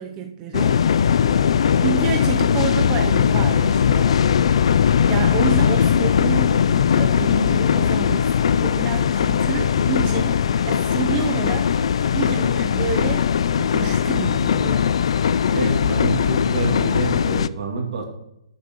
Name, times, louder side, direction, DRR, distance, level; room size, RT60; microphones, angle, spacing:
voice 1, 0.0-4.5 5.1-6.7 7.0-11.7 12.1-14.9, right 8 dB, 25° right, 4 dB, 0.6 m, -30 dB
sound 1, 0.5-17.5, left 7 dB, 75° left, 0.3 m, -19 dB
voice 2, 15.5-18.0, right 4 dB, 70° right, 2 dB, 2.2 m, -27 dB
11.5 x 6.9 x 3.0 m, 0.81 s
hypercardioid pair, 145°, 3 cm